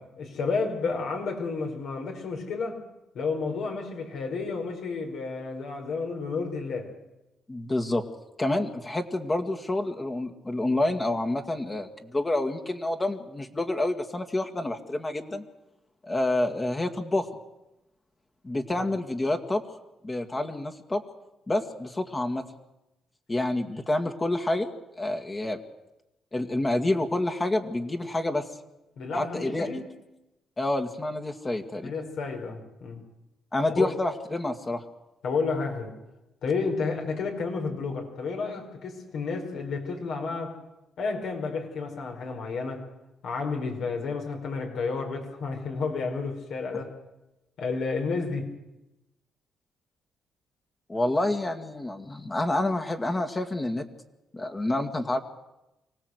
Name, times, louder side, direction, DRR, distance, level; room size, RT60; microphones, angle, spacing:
voice 1, 0.2-2.8 3.1-6.9 18.8-18.9 29.0-29.9 31.8-33.0 33.8-33.9 35.2-35.9 36.4-40.5 41.0-42.9 43.2-46.9 47.6-48.5, left 4 dB, 75° left, 2 dB, 5.1 m, -31 dB
voice 2, 7.5-8.0 8.4-15.4 16.0-17.3 18.4-19.6 20.0-21.0 21.5-22.4 23.3-24.7 25.0-25.6 26.3-28.5 29.1-29.7 30.6-31.9 33.5-34.8 50.9-53.9 54.3-55.2, left 2 dB, 20° left, 4 dB, 1.9 m, -28 dB
25.0 x 17.5 x 8.1 m, 0.94 s
cardioid pair, 90°, 0 cm